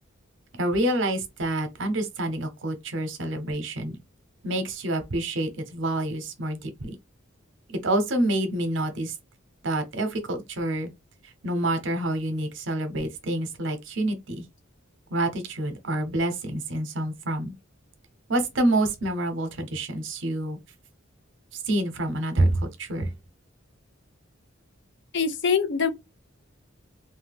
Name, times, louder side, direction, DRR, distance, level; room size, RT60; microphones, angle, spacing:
voice 1, 0.6-4.0 4.4-7.0 7.7-9.1 9.6-10.9 11.4-14.4 15.1-17.5 18.3-20.6 21.7-23.1, right 1 dB, 65° right, 0.8 m, -27 dB
voice 2, 25.1-25.9, left 6 dB, 60° left, 0.5 m, -23 dB
2.7 x 2.2 x 3.4 m
head